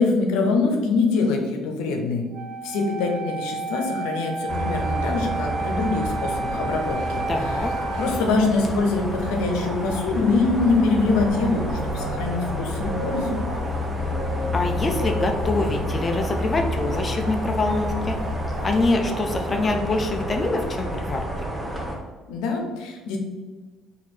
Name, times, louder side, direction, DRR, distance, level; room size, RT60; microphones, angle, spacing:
voice 1, 0.0-2.3 2.6-7.5 8.0-11.7 11.9-13.4 22.3-23.2, left 3 dB, 85° left, 3 dB, 0.7 m, -24 dB
Wind instrument woodwind instrument, 2.3-8.3, right 3 dB, 55° right, 0.5 m, -31 dB
sound 1, 4.5-22.0, equal, 10° right, 1.0 m, -29 dB
sound 2, 6.7-19.7, right 2 dB, 85° right, 1.4 m, -39 dB
voice 2, 7.3-7.7 14.5-18.2 18.6-21.2, left 2 dB, 30° left, 3 dB, 0.5 m, -25 dB
4.3 x 2.8 x 4.4 m, 1.3 s
cardioid pair, 95°, 0 cm